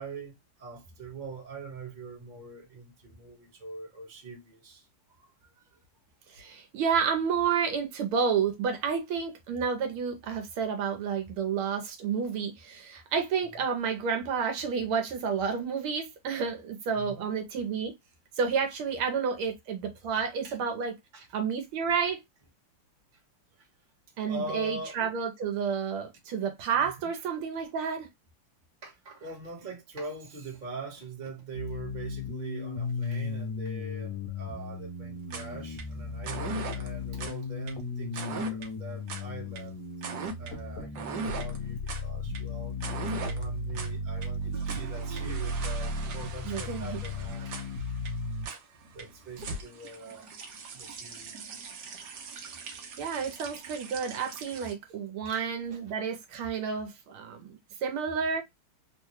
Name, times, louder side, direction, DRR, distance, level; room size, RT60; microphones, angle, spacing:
voice 1, 0.0-5.8 17.0-17.3 20.4-20.6 21.1-21.3 23.1-23.2 23.6-23.7 24.2-25.1 26.7-27.1 28.8-39.8 40.4-47.9 48.5-48.6 48.9-50.3 50.7-51.4 55.2-55.4 55.7-55.8, right 3 dB, 30° right, 1.0 m, -43 dB
voice 2, 6.3-17.9 18.3-20.9 21.3-22.2 24.2-28.1 46.4-47.0 53.0-58.4, right 6 dB, 80° right, 1.6 m, -30 dB
sound 1, 31.5-48.5, left 2 dB, 60° left, 1.4 m, -35 dB
sound 2, 35.2-54.7, right 4 dB, 65° right, 1.2 m, -40 dB
3.8 x 2.2 x 3.0 m
omnidirectional pair, 2.4 m